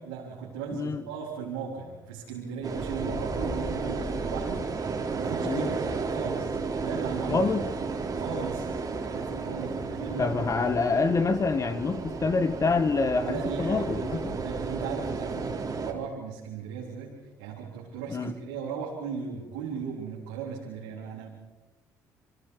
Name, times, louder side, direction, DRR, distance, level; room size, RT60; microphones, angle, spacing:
voice 1, 0.0-4.7 5.1-7.5 8.1-10.5 13.2-21.3, right 5 dB, 85° right, -4 dB, 3.8 m, -37 dB
voice 2, 0.7-1.0 5.4-5.7 7.3-7.7 10.2-14.4 18.1-18.3, left 4 dB, 35° left, 11 dB, 1.5 m, -26 dB
sound 1, 2.6-15.9, right 4 dB, 40° right, 3.8 m, -33 dB
29.0 x 23.5 x 4.8 m, 1.1 s
hypercardioid pair, 55°, 9 cm